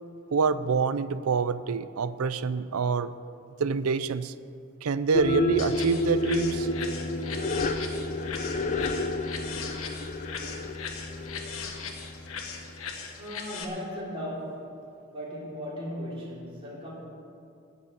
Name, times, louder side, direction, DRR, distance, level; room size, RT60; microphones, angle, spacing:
voice 1, 0.3-3.1 3.6-4.3 4.8-6.7, right 5 dB, 85° right, 15 dB, 0.5 m, -26 dB
sound 1, 5.1-12.6, left 1 dB, 35° left, 0.7 m, -30 dB
sound 2, 5.6-13.6, left 5 dB, 70° left, 1.4 m, -39 dB
voice 2, 13.2-14.7 15.1-16.9, equal, 25° right, -6 dB, 3.4 m, -37 dB
15.5 x 5.5 x 9.7 m, 2.5 s
head